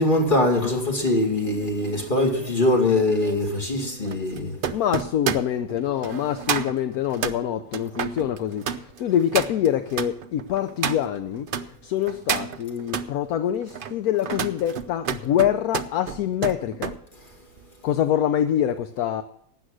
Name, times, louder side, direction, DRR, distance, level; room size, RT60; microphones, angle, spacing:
voice 1, 0.0-4.6, left 2 dB, 30° left, 2.6 m, -22 dB
sound 1, 1.0-11.7 12.0-13.1 13.6-17.0 17.3-17.6, right 7 dB, 65° right, 0.5 m, -31 dB
voice 2, 4.7-8.6 9.0-11.4 11.9-16.9 17.8-19.2, left 10 dB, 70° left, 1.1 m, -25 dB
12.5 x 8.7 x 6.3 m
omnidirectional pair, 1.7 m